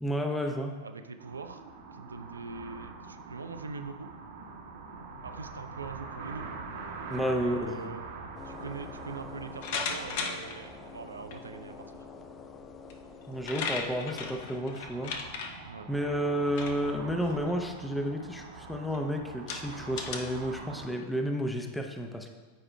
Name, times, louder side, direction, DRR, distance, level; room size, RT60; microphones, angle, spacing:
voice 1, 0.0-0.7 7.1-7.9 13.3-15.1 15.4-15.5 15.9-22.3, equal, 5° left, 3 dB, 0.7 m, -31 dB
voice 2, 0.8-1.6 1.9-4.1 5.2-6.6 7.2-8.0 8.4-12.0 15.7-15.9, right 4 dB, 75° right, 7 dB, 0.4 m, -42 dB
sound 1, 1.2-20.9, right 4 dB, 55° right, 1.1 m, -45 dB
sound 2, 8.3-14.5, left 6 dB, 25° left, 0.3 m, -48 dB
sound 3, 9.6-10.6 11.3-11.4 12.9-13.0 13.2-15.5 16.5-16.8 17.2-17.5 18.2-18.3 18.9-19.0 19.5-20.2, left 5 dB, 50° left, 0.7 m, -35 dB
13.0 x 4.8 x 2.2 m, 1.3 s
figure-of-eight pair, 90°, 0 cm